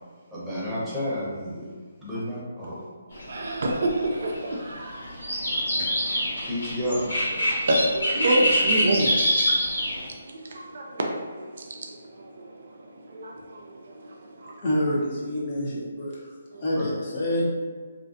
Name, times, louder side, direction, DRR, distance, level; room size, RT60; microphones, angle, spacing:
voice 1, 0.3-1.7 2.0-2.8 6.5-7.1 16.7-16.8, equal, 5° right, -11 dB, 0.8 m, -30 dB
sound 1, 3.1-10.1, equal, 80° left, 1.3 m, -25 dB
voice 2, 3.3-5.9 6.3-6.4 7.4-14.6 16.5-16.7, right 1 dB, 60° right, 0 dB, 0.4 m, -29 dB
voice 3, 14.6-16.3 16.6-17.4, left 1 dB, 40° left, -5 dB, 0.7 m, -27 dB
2.5 x 2.3 x 2.5 m, 1.5 s
figure-of-eight pair, 145°, 0 cm